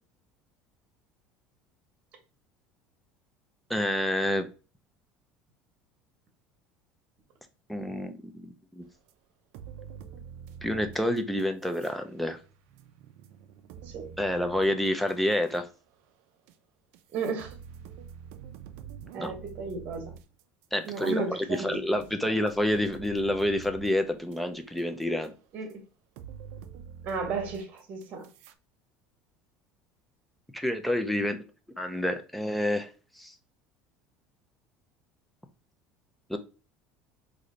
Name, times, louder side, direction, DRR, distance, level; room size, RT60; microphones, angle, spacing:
voice 1, 3.7-4.5 7.7-8.8 10.6-12.4 14.2-15.7 19.2-19.3 20.7-25.3 30.5-31.4 31.8-32.9 33.2-33.3 36.3-36.4, left 1 dB, ahead, 6 dB, 0.4 m, -28 dB
sound 1, 9.1-9.2 9.5-12.0 12.3-15.6 16.5-16.6 16.9-24.4 24.7-25.3 25.7-25.8 26.2-28.5, right 7 dB, 65° right, 0.4 m, -47 dB
voice 2, 17.1-17.5 19.1-20.1 20.8-22.4 25.5-25.8 27.0-28.3, right 4 dB, 40° right, 5 dB, 1.0 m, -34 dB
3.1 x 2.6 x 3.8 m, 0.33 s
cardioid pair, 165°, 4 cm